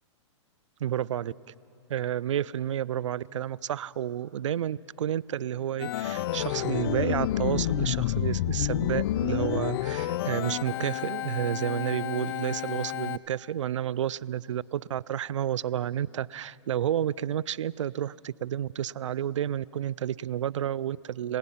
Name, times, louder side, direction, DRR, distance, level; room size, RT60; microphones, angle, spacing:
voice 1, 0.8-1.3 1.9-21.4, right 10 dB, 85° right, 23 dB, 0.4 m, -30 dB
Organ, 5.8-13.2, left 14 dB, 50° left, 0.4 m, -30 dB
29.0 x 17.5 x 5.7 m, 2.9 s
hypercardioid pair, 140°, 15 cm